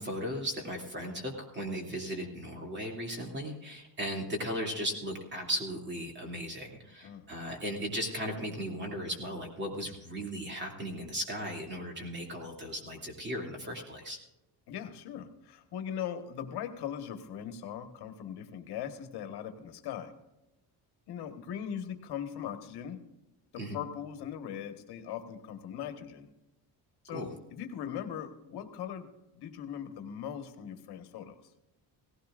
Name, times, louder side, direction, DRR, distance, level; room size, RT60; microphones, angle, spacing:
voice 1, 0.0-14.2 23.6-23.8 27.1-27.3, equal, 25° right, 1 dB, 2.7 m, -36 dB
voice 2, 14.7-20.1 21.1-23.0 23.5-26.3 27.0-29.1 29.4-31.4, left 9 dB, 65° left, 6 dB, 1.5 m, -40 dB
17.5 x 16.0 x 2.5 m, 0.95 s
cardioid pair, 155°, 42 cm